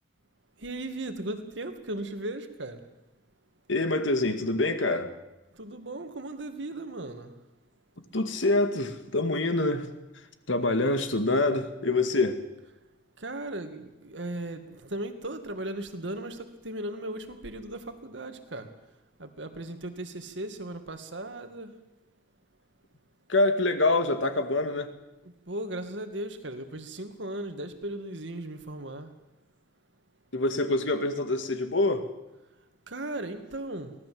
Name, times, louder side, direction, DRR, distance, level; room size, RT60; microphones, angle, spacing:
voice 1, 0.6-2.8 5.6-7.3 13.2-18.7 19.2-21.7 25.5-29.1 32.9-33.9, right 1 dB, 70° right, 8 dB, 2.3 m, -37 dB
voice 2, 3.7-5.1 8.1-9.9 10.5-12.4 23.3-24.9 30.3-32.1, left 2 dB, 85° left, 8 dB, 2.1 m, -25 dB
24.0 x 17.5 x 7.9 m, 0.99 s
head